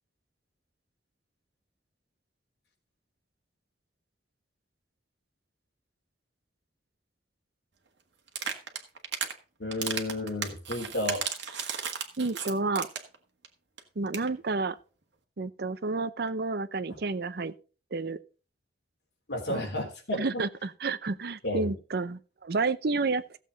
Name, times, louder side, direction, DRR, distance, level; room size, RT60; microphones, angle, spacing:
sound 1, 8.3-9.3 9.7-13.2 13.4-13.5 13.8-13.9 14.1-14.3, right 7 dB, 80° right, 1.6 m, -34 dB
voice 1, 9.6-11.2 19.3-20.4 21.4-21.7, left 1 dB, 65° left, 3.3 m, -32 dB
voice 2, 12.2-12.9 14.0-14.8 15.4-17.5 17.9-18.2 19.5-19.6 20.2-23.4, right 3 dB, 60° right, 0.6 m, -30 dB
15.0 x 7.6 x 3.9 m
head